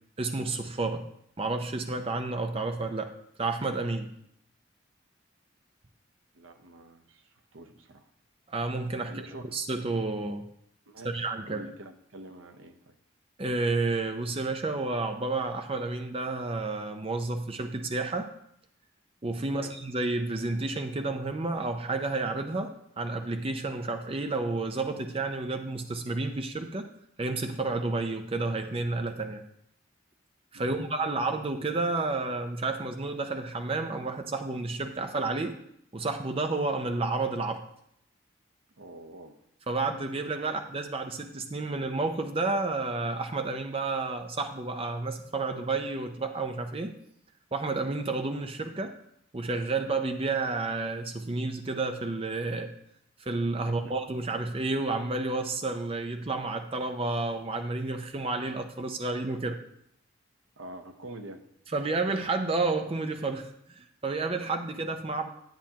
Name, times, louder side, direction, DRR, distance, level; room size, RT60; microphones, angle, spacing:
voice 1, 0.2-1.1 1.4-3.1 3.4-4.1 8.5-9.1 9.5-10.5 11.0-11.6 13.4-18.3 19.2-26.9 27.2-29.4 30.5-35.6 35.9-37.6 39.7-46.9 47.5-49.0 49.3-52.7 53.2-59.6 61.7-65.3, right 3 dB, 30° right, 6 dB, 0.5 m, -31 dB
voice 2, 6.3-8.1 9.1-9.6 10.9-12.9 19.5-19.8 30.5-30.9 38.8-39.4 40.5-40.6 53.7-54.0 60.6-61.4, right 1 dB, 75° right, 7 dB, 0.8 m, -46 dB
10.5 x 8.7 x 2.9 m, 0.72 s
head